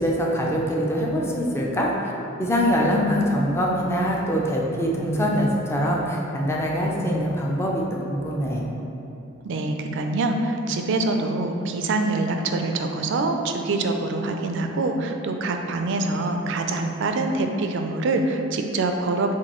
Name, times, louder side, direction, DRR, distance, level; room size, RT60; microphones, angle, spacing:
voice 1, 0.0-2.1 2.4-8.6, equal, 15° left, -3 dB, 0.5 m, -23 dB
voice 2, 9.4-19.4, right 2 dB, 60° right, 4 dB, 0.4 m, -25 dB
7.0 x 2.6 x 3.0 m, 2.9 s
head